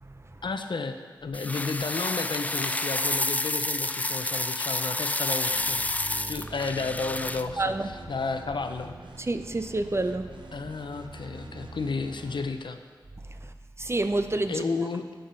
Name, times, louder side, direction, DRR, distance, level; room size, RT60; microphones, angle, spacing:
voice 1, 0.4-5.8 6.3-7.7 8.1-9.0 10.5-12.8 14.5-15.1, left 4 dB, 75° left, 8 dB, 0.6 m, -32 dB
sound 1, 1.3-7.4, left 2 dB, 20° left, 0.3 m, -29 dB
sound 2, 5.5-12.6, right 2 dB, 80° right, 0.9 m, -44 dB
voice 2, 7.6-7.9 9.2-10.3 13.3-14.6, right 2 dB, 35° right, 8 dB, 0.7 m, -29 dB
8.6 x 7.8 x 5.4 m, 1.6 s
cardioid pair, 45°, 8 cm